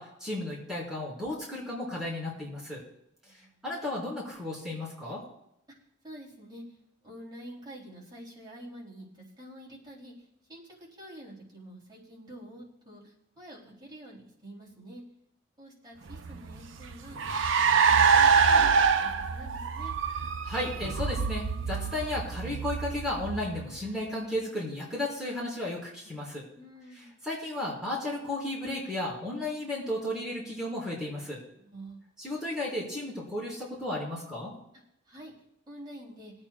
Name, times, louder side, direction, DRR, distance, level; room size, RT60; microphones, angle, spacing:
voice 1, 0.0-2.8 3.4-5.2 20.4-26.4 27.2-31.4 32.2-34.5, left 1 dB, 5° right, -8 dB, 4.5 m, -34 dB
voice 2, 3.2-3.6 6.0-6.6 7.0-10.1 10.5-15.0 15.6-17.2 17.6-19.9 26.5-27.2 31.5-32.0 35.1-35.3 35.7-36.3, right 1 dB, 20° right, -5 dB, 3.3 m, -47 dB
Car, 16.1-23.9, right 6 dB, 75° right, 0.6 m, -25 dB
21.5 x 8.8 x 2.4 m, 0.78 s
head